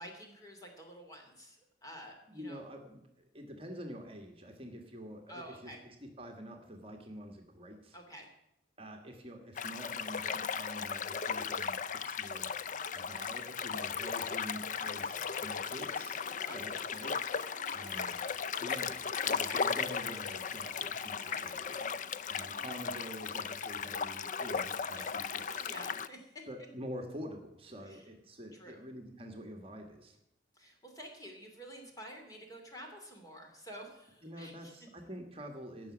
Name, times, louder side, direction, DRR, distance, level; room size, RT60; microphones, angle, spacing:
voice 1, 0.0-2.6 5.3-5.8 7.9-8.3 12.9-13.2 16.4-16.8 17.3-18.1 19.3-19.6 21.2-21.6 22.3-22.8 24.9-25.1 25.5-26.3 27.8-28.0 28.5-28.8 30.5-34.9, equal, 20° left, 2 dB, 2.9 m, -50 dB
voice 2, 2.3-8.0 8.8-12.5 12.9-16.2 16.5-17.1 17.7-18.1 18.6-21.8 22.3-25.7 26.5-30.2 34.2-35.9, equal, 35° right, 3 dB, 1.5 m, -47 dB
sound 1, 9.6-26.1, left 6 dB, 45° left, 0.5 m, -36 dB
16.0 x 6.0 x 9.1 m, 0.81 s
head